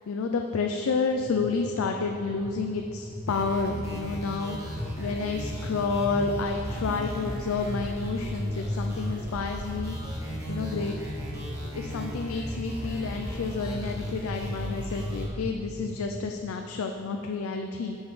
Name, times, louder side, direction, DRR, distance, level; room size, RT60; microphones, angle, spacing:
voice 1, 0.1-11.1 11.7-18.0, left 4 dB, 75° left, 4 dB, 0.4 m, -30 dB
sound 1, 1.1-16.3, equal, 50° right, 1.6 m, -40 dB
sound 2, 3.3-15.3, equal, 15° right, 1.5 m, -35 dB
9.0 x 7.2 x 3.2 m, 2.6 s
head